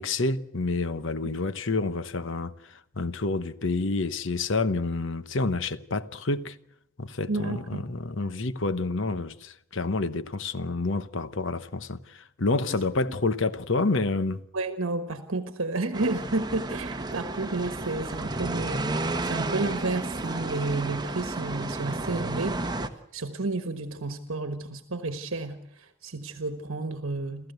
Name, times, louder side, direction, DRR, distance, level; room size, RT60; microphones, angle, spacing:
voice 1, 0.0-6.6 7.0-14.4, left 3 dB, 60° left, 1.0 m, -28 dB
voice 2, 7.3-7.8 12.7-12.8 14.5-22.6 23.1-27.5, right 3 dB, 65° right, 1.3 m, -31 dB
sound 1, 15.9-22.9, right 2 dB, 20° right, 1.1 m, -32 dB
28.5 x 14.0 x 8.0 m
head